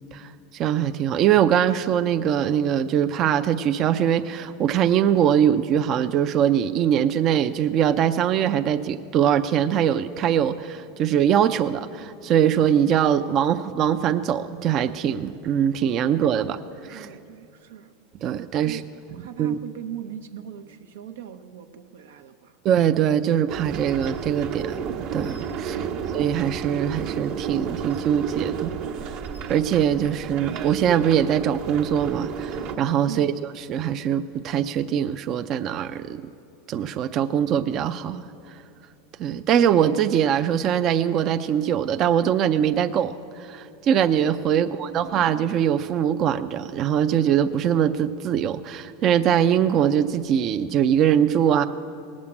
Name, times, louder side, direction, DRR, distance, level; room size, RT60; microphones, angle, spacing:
voice 1, 0.1-16.6 16.9-17.1 18.2-18.8 19.4-19.6 22.6-25.9 26.1-28.7 29.0-29.2 29.5-33.3 33.7-36.2 36.7-38.2 39.2-51.6, right 9 dB, 40° right, 9 dB, 0.4 m, -22 dB
voice 2, 16.3-17.9 18.6-18.9 19.1-22.6 25.7-26.1 33.1-33.4 44.5-45.3, right 10 dB, 85° right, 8 dB, 0.8 m, -40 dB
sound 1, 23.5-32.8, right 7 dB, 60° right, 1.1 m, -32 dB
19.0 x 7.4 x 8.6 m, 2.7 s
supercardioid pair, 130°, 0 cm